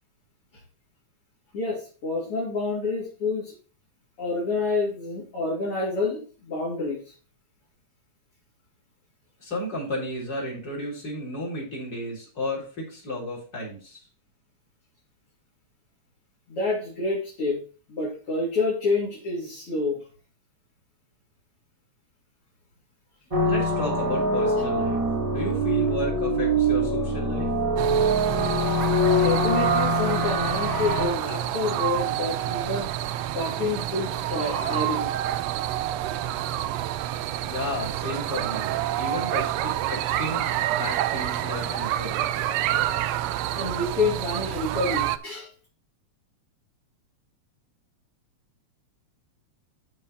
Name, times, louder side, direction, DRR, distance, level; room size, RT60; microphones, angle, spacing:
voice 1, 1.5-3.5 4.2-7.0 16.5-17.6 17.9-20.0 28.0-28.1 29.1-32.9 33.3-35.1 43.6-45.5, left 3 dB, 50° left, -6 dB, 3.6 m, -28 dB
voice 2, 9.4-14.0 23.4-25.0 25.3-27.5 37.4-42.2, left 1 dB, 30° left, -3 dB, 4.1 m, -33 dB
sound 1, 23.3-31.1, right 1 dB, 20° right, 0.9 m, -24 dB
sound 2, 27.8-45.2, right 13 dB, 80° right, 1.6 m, -28 dB
12.5 x 4.4 x 4.2 m, 0.38 s
omnidirectional pair, 3.3 m